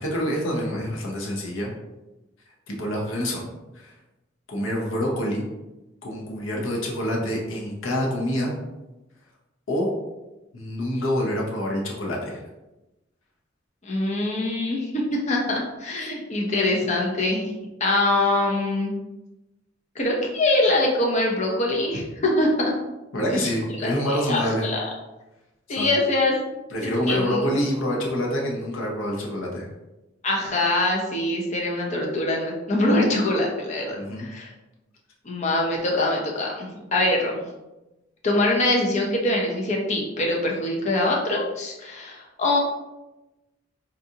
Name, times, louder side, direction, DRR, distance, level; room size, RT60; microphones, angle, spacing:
voice 1, 0.0-1.7 2.7-3.5 3.7-4.0 4.5-5.5 6.0-8.5 9.7-9.9 10.5-12.4 23.1-24.7 25.7-25.9 26.7-29.7 33.9-34.3, equal, 85° left, -1 dB, 0.7 m, -26 dB
voice 2, 13.8-15.0 15.3-17.5 17.8-18.9 20.0-22.7 23.8-24.8 25.7-26.3 27.1-27.3 30.2-34.5 35.2-37.4 38.2-42.6, left 2 dB, 35° left, -1 dB, 0.7 m, -23 dB
3.9 x 2.5 x 2.7 m, 1.0 s
head